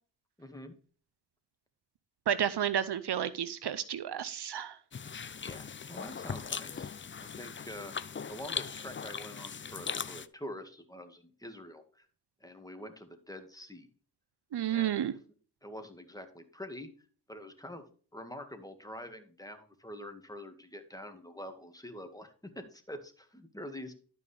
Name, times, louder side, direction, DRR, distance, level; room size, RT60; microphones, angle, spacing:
voice 1, 0.4-0.8 5.4-6.9 7.2-7.9 8.3-12.1 12.4-13.9 14.7-15.2 15.6-17.9 18.1-23.9, left 1 dB, 10° left, 6 dB, 1.9 m, -46 dB
voice 2, 2.3-4.8 14.5-15.1, right 9 dB, 70° right, 14 dB, 0.7 m, -31 dB
sound 1, 4.9-10.3, left 6 dB, 30° left, 0.5 m, -39 dB
12.0 x 5.4 x 3.4 m, 0.41 s
cardioid pair, 45°, 42 cm